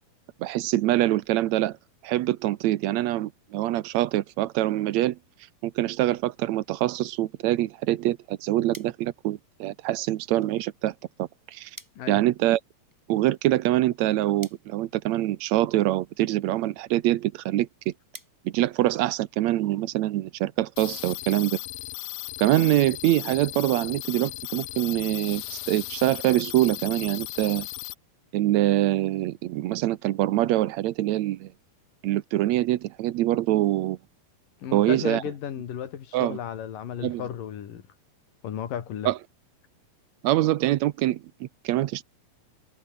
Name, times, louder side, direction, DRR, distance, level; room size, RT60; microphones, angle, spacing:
voice 1, 0.4-1.8 2.0-5.2 5.6-10.9 11.2-11.7 12.1-12.6 13.1-17.9 18.5-21.6 22.4-27.7 28.3-31.5 32.0-34.0 34.7-35.2 36.1-36.4 37.0-37.2 39.1-39.2 40.2-42.0, right 15 dB, 75° right, 1.7 m, -24 dB
sound 1, 8.7-19.5, equal, 5° right, 7.9 m, -54 dB
sound 2, 20.8-27.9, left 19 dB, 85° left, 2.4 m, -36 dB
voice 2, 34.6-37.9 38.4-39.1, left 9 dB, 70° left, 3.8 m, -34 dB
omnidirectional pair, 4.1 m